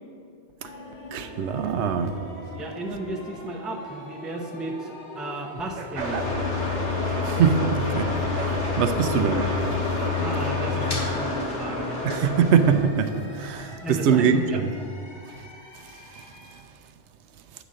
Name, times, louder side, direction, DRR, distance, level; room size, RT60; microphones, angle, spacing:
sound 1, 0.6-16.6, left 1 dB, 45° left, 1.1 m, -43 dB
voice 1, 1.1-2.2 7.2-8.1 8.4-9.6 12.0-14.7 15.8-16.3, right 7 dB, 80° right, 8 dB, 0.9 m, -23 dB
voice 2, 2.5-6.3 10.2-12.0 13.8-14.6, right 2 dB, ahead, 2 dB, 0.4 m, -34 dB
sound 2, 5.8-10.8, right 5 dB, 55° right, 0.5 m, -40 dB
sound 3, 6.0-12.8, left 3 dB, 80° left, 1.9 m, -27 dB
8.7 x 4.0 x 6.2 m, 2.5 s
omnidirectional pair, 1.2 m